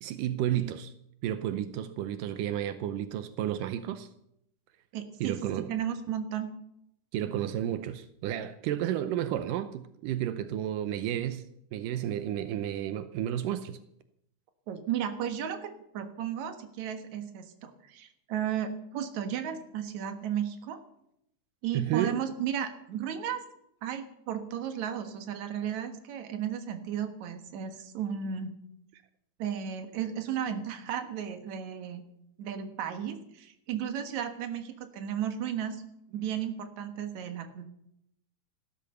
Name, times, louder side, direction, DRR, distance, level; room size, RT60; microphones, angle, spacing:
voice 1, 0.0-0.9 1.2-4.1 5.2-5.7 7.1-11.5 11.7-13.8 21.7-22.1, right 11 dB, 85° right, 2.4 m, -32 dB
voice 2, 4.9-6.5 14.7-20.8 21.6-23.4 23.8-28.5 29.4-32.0 32.4-35.8 36.1-37.7, right 9 dB, 65° right, 2.7 m, -34 dB
16.0 x 12.5 x 6.8 m
omnidirectional pair, 3.7 m